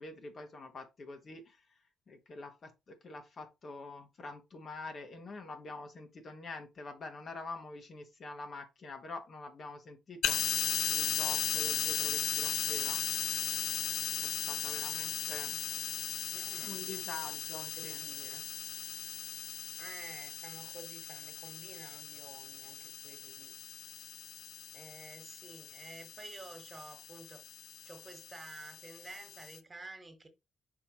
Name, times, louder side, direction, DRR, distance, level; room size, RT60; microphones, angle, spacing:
voice 1, 0.0-1.6 2.1-10.6 10.9-13.0 14.2-15.5 16.6-18.0, left 3 dB, 45° left, 1.3 m, -46 dB
sound 1, 10.2-29.6, left 11 dB, 65° left, 0.5 m, -37 dB
voice 2, 10.3-10.8 15.5-15.8 16.3-17.0 17.6-18.4 19.8-23.5 24.7-27.4 27.8-30.3, right 2 dB, 25° right, 1.8 m, -51 dB
6.0 x 5.6 x 3.1 m
figure-of-eight pair, 40°, 0 cm